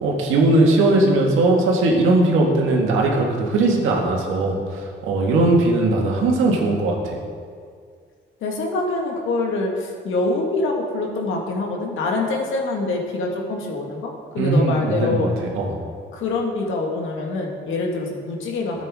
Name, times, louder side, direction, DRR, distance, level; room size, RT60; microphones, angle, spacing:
voice 1, 0.0-7.2 14.4-15.7, right 2 dB, 90° right, -1 dB, 1.8 m, -19 dB
voice 2, 8.4-15.3 16.1-18.9, left 3 dB, 80° left, 1 dB, 1.7 m, -25 dB
13.0 x 8.3 x 3.6 m, 2.1 s
cardioid pair, 90°, 20 cm